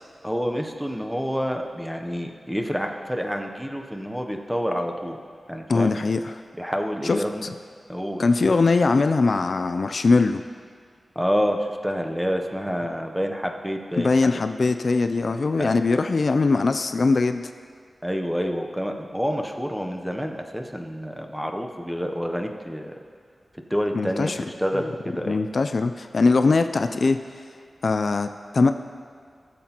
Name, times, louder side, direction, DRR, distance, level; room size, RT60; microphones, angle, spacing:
voice 1, 0.2-5.2 5.5-6.0 6.6-7.5 7.9-8.2 11.2-14.5 15.6-15.8 18.0-22.9 23.7-24.3 24.6-25.4, equal, ahead, 3 dB, 0.7 m, -28 dB
voice 2, 5.7-6.4 7.0-7.5 8.2-10.4 14.0-17.5 23.9-24.4 24.7-24.8 25.3-27.2 27.8-28.3 28.5-28.7, left 3 dB, 55° left, 8 dB, 0.3 m, -21 dB
16.0 x 7.6 x 2.9 m, 2.2 s
wide cardioid pair, 115°, 0 cm